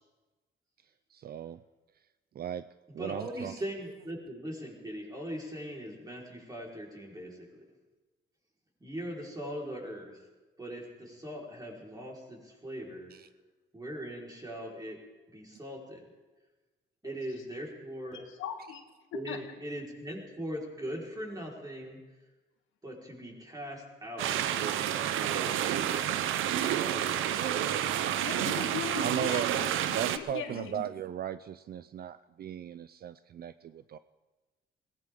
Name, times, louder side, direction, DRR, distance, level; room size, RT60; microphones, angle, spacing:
voice 1, 1.1-1.6 2.4-2.6 2.9-3.5 29.0-29.5 29.9-34.0, right 10 dB, 50° right, 13 dB, 0.5 m, -36 dB
voice 2, 3.0-7.6 8.8-10.2 10.6-13.1 13.7-15.0 15.3-16.1 17.0-18.2 19.1-22.0 22.8-27.5, equal, 20° right, -2 dB, 4.7 m, -41 dB
voice 3, 18.1-18.8 19.1-19.4 28.2-30.9, left 9 dB, 85° left, 5 dB, 1.7 m, -39 dB
sound 1, 24.2-30.2, right 10 dB, 85° right, 0.7 m, -29 dB
21.0 x 17.5 x 3.8 m, 1.2 s
cardioid pair, 90°, 20 cm